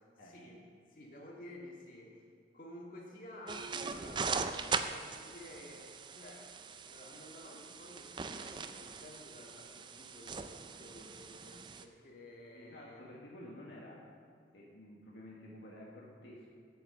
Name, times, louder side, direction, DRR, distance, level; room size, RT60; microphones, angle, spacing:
voice 1, 0.2-0.6 0.9-2.1 2.5-6.5 6.8-10.5 10.8-13.0, left 1 dB, 50° left, -3 dB, 1.9 m, -52 dB
sound 1, 3.5-11.8, right 5 dB, 25° right, 0.4 m, -40 dB
voice 2, 12.5-14.0 14.5-16.5, left 1 dB, 70° left, -4 dB, 1.4 m, -51 dB
8.5 x 7.9 x 6.4 m, 2.2 s
head